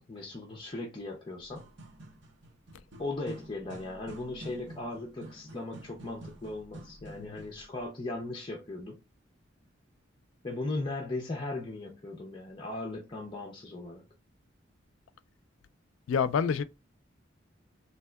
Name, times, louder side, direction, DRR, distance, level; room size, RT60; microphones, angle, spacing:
voice 1, 0.0-1.7 3.0-9.0 10.4-14.1, left 2 dB, 25° left, 0.5 m, -38 dB
golpe fuerte de pie en una escalon de metal, 1.4-7.7, right 1 dB, 65° right, 0.8 m, -48 dB
voice 2, 16.1-16.6, left 6 dB, 85° left, 0.3 m, -27 dB
3.5 x 2.8 x 2.2 m
head